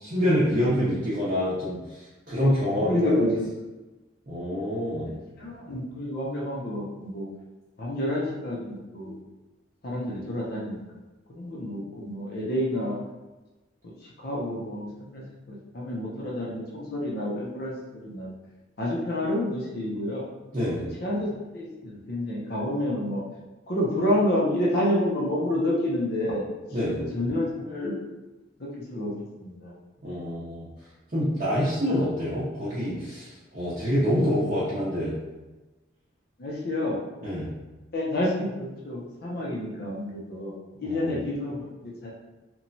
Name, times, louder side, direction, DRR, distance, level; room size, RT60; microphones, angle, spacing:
voice 1, 0.0-3.1 4.3-5.1 20.5-20.9 26.7-27.0 30.0-30.7 31.1-35.2 37.2-37.5 40.8-41.2, equal, 40° right, -11 dB, 0.6 m, -26 dB
voice 2, 2.8-3.5 5.4-7.2 7.8-9.2 9.8-10.8 11.3-13.0 13.8-13.9 14.2-17.8 18.0-18.3 18.8-20.2 20.8-23.2 23.7-26.4 27.0-28.0 28.6-29.2 29.4-29.7 36.4-37.0 37.9-40.5 40.8-42.1, left 1 dB, 50° left, -4 dB, 0.5 m, -29 dB
2.9 x 2.2 x 2.6 m, 1.1 s
head